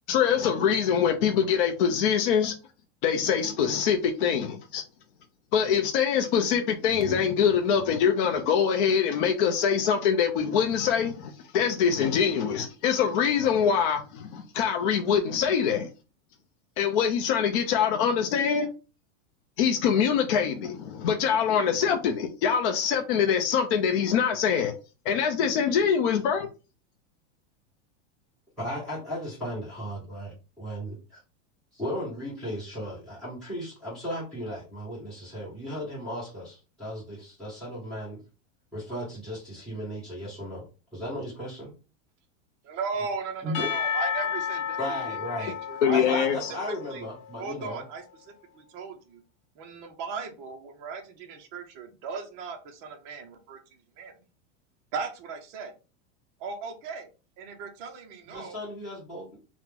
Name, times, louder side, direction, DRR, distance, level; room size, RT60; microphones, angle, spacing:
voice 1, 0.1-2.5 3.0-4.8 5.5-15.9 16.8-18.7 19.6-24.7 25.1-26.5 45.8-46.5, left 7 dB, 50° left, 0.4 m, -24 dB
voice 2, 28.6-31.2 31.7-38.2 38.7-40.6 40.9-41.7 43.4-43.7 44.8-45.6 45.9-47.8 58.3-59.4, equal, ahead, 1.3 m, -36 dB
voice 3, 42.7-46.2 46.8-47.1 47.4-48.0 48.5-49.2 49.6-53.6 54.0-54.1 54.9-55.7 56.4-57.1 57.4-58.6, right 5 dB, 25° right, 0.4 m, -37 dB
Percussion / Church bell, 43.5-47.7, left 8 dB, 85° left, 0.8 m, -32 dB
2.9 x 2.0 x 3.5 m
supercardioid pair, 165°, 36 cm